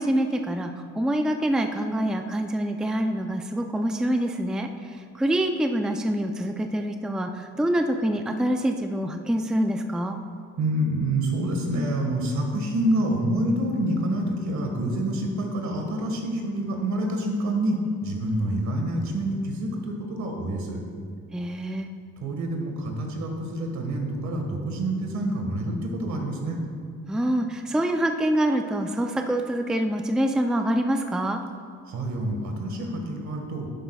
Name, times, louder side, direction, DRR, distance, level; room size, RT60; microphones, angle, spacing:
voice 1, 0.0-4.7 5.1-10.2 21.3-21.9 27.1-31.4, right 1 dB, ahead, 5 dB, 0.5 m, -25 dB
voice 2, 10.6-20.8 22.2-26.6 31.9-33.7, right 1 dB, 65° right, 2 dB, 1.7 m, -27 dB
11.0 x 9.8 x 2.4 m, 2.1 s
cardioid pair, 90°, 30 cm